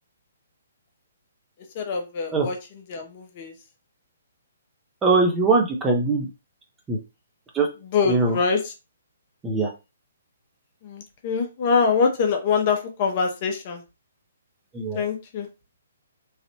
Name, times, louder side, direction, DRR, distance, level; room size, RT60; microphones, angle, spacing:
voice 1, 1.7-3.5 7.8-8.7 10.8-13.8 14.9-15.5, left 5 dB, 40° left, 0.8 m, -24 dB
voice 2, 5.0-6.3 6.9-7.0 7.5-7.7 8.1-8.4 9.4-9.7 14.7-15.1, right 3 dB, 15° right, 0.7 m, -21 dB
3.2 x 2.5 x 2.8 m
figure-of-eight pair, 130°, 0 cm